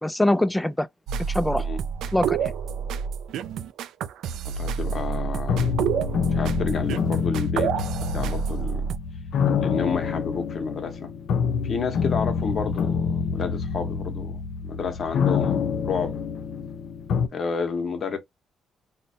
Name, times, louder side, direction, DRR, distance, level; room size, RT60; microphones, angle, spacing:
voice 1, 0.0-0.9 1.3-1.7 2.1-2.5, left 1 dB, 10° left, 0.3 m, -23 dB
sound 1, 1.1-9.0, right 7 dB, 80° right, 0.3 m, -29 dB
voice 2, 4.4-5.7 6.3-7.8 8.1-8.9 9.6-11.1 11.6-16.2 17.3-18.2, left 5 dB, 50° left, 0.8 m, -30 dB
sound 2, 4.8-17.3, left 6 dB, 70° left, 0.4 m, -27 dB
3.8 x 2.1 x 2.6 m
cardioid pair, 90°, 0 cm